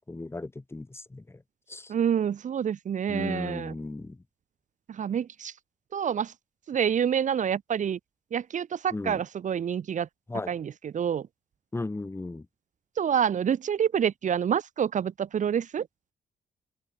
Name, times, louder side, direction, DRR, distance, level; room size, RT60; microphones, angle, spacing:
voice 1, 0.1-1.4 1.7-1.9 3.1-4.2 8.9-9.2 10.3-10.5 11.7-12.5, left 2 dB, 15° left, 4.5 m, -35 dB
voice 2, 1.9-3.7 4.9-5.5 5.9-6.3 6.7-8.0 8.3-10.1 10.5-11.3 13.0-15.9, right 8 dB, 55° right, 1.5 m, -27 dB
open air
cardioid pair, 130°, 15 cm